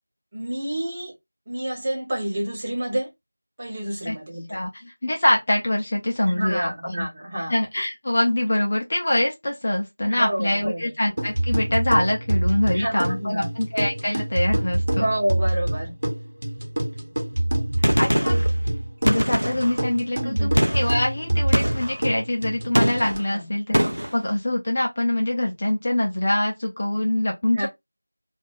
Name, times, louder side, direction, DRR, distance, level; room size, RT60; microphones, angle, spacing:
voice 1, 0.3-1.1 1.5-3.1 3.6-4.6 6.2-7.6 10.0-10.9 12.7-13.5 14.9-15.9 20.2-20.6 23.3-23.5 27.5-27.7, right 1 dB, 20° right, 0.8 m, -29 dB
voice 2, 4.5-7.1 7.5-15.1 18.0-18.4 19.0-23.8 24.1-27.7, left 1 dB, 30° left, 0.5 m, -24 dB
sound 1, 11.2-23.2, right 1 dB, 55° right, 1.0 m, -26 dB
Gunshot gunfire, 17.8-18.5 19.1-19.8 20.6-21.0 21.5-22.0 22.7-23.2 23.7-24.1, equal, 80° right, 0.5 m, -22 dB
2.4 x 2.1 x 3.1 m
figure-of-eight pair, 175°, 0 cm